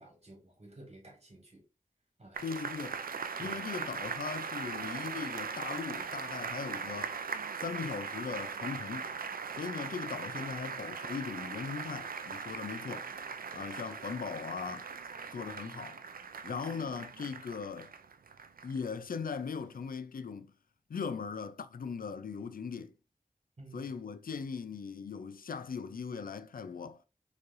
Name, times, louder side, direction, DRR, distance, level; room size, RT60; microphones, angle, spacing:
voice 1, 0.0-1.6 2.2-2.4 3.4-3.6 23.6-23.9, right 2 dB, 50° right, 1.7 m, -52 dB
sound 1, 2.3-18.9 19.3-19.4, right 5 dB, 90° right, 0.4 m, -40 dB
voice 2, 2.4-3.0 3.4-7.2 7.6-9.1 9.6-13.1 13.5-14.9 15.3-16.0 16.4-17.9 18.6-20.5 20.9-22.9 23.7-27.0, left 5 dB, 80° left, 0.4 m, -39 dB
4.5 x 3.2 x 2.5 m
wide cardioid pair, 50°, 14 cm